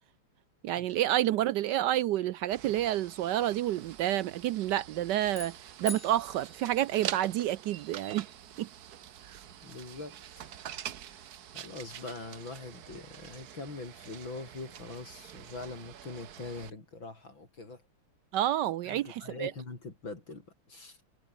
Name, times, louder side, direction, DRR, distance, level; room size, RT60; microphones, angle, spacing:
voice 1, 0.6-8.3 8.6-8.7 9.3-9.4 18.3-19.5, right 13 dB, 75° right, 0.9 m, -29 dB
sound 1, 2.5-16.7, right 10 dB, 55° right, 1.3 m, -45 dB
sound 2, 5.3-7.6, left 4 dB, 25° left, 1.9 m, -46 dB
voice 2, 9.6-10.6 11.0-11.3 11.5-17.8 18.9-21.0, left 3 dB, 60° left, 5.7 m, -43 dB
omnidirectional pair, 2.4 m